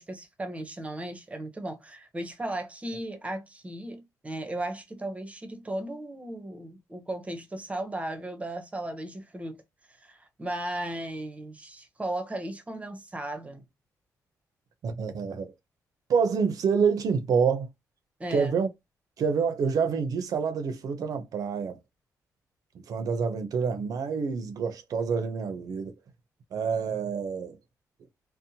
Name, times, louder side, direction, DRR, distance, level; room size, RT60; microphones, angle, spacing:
voice 1, 0.0-9.6 10.0-13.6 18.2-18.6, right 1 dB, 20° right, 0.7 m, -36 dB
voice 2, 14.8-15.5 16.1-17.7 18.3-18.7 19.2-21.8 22.9-26.0 26.5-27.6, right 6 dB, 65° right, 0.6 m, -27 dB
2.7 x 2.0 x 2.7 m
cardioid pair, 95°, 7 cm